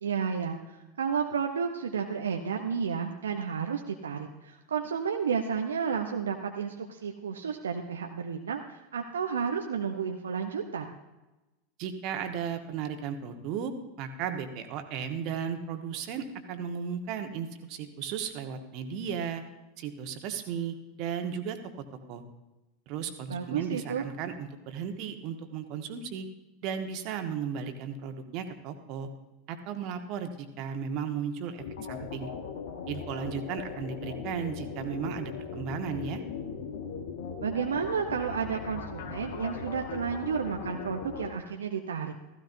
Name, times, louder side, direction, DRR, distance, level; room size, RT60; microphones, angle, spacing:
voice 1, 0.0-10.9 23.3-24.0 37.4-42.1, right 6 dB, 75° right, 3 dB, 0.8 m, -32 dB
voice 2, 11.8-19.4 19.8-21.6 22.1-22.2 22.9-26.3 26.6-29.1 29.5-32.3 32.9-36.2, right 7 dB, 50° right, 6 dB, 1.6 m, -35 dB
sound 1, 31.6-41.3, left 5 dB, 65° left, 1.5 m, -39 dB
16.0 x 15.0 x 2.7 m, 1.0 s
figure-of-eight pair, 85°, 0 cm